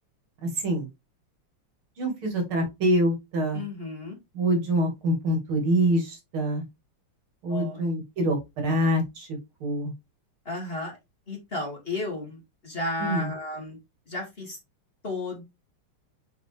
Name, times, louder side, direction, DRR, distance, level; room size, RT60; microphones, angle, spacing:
voice 1, 0.4-0.9 2.0-3.6 4.3-6.6 7.4-9.9 13.0-13.3, right 1 dB, 75° right, 3 dB, 3.0 m, -25 dB
voice 2, 3.5-4.2 7.5-7.9 10.4-11.0 11.3-13.8 14.1-14.6 15.0-15.4, left 2 dB, 25° left, 0 dB, 2.5 m, -33 dB
6.0 x 5.1 x 3.4 m, 0.22 s
omnidirectional pair, 2.3 m